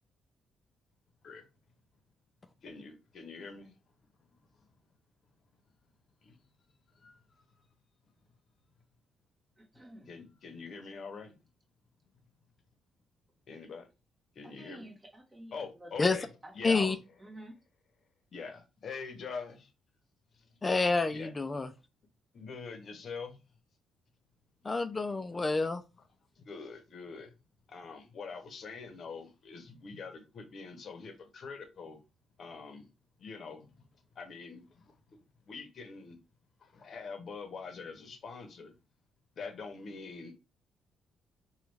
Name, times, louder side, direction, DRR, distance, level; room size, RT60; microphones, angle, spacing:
voice 1, 2.6-3.8 4.3-4.7 6.2-6.4 6.9-7.4 10.0-11.4 13.5-13.9 14.3-14.9 15.5-16.3 16.5-17.0 18.3-19.7 20.3-20.5 21.1-21.3 22.3-23.4 24.6-24.8 25.3-25.4 26.4-27.3 27.7-32.0 32.4-32.9 33.2-33.9 34.1-36.2 36.6-38.7 39.4-40.3, left 5 dB, 55° left, 0.8 m, -44 dB
voice 2, 9.6-10.1 14.4-16.2 16.4-16.8 17.2-17.6, right 1 dB, 20° right, 1.3 m, -51 dB
voice 3, 16.6-17.0 20.6-21.7 24.6-25.8, left 3 dB, 25° left, 0.4 m, -28 dB
3.0 x 2.3 x 3.3 m
cardioid pair, 90°, 0 cm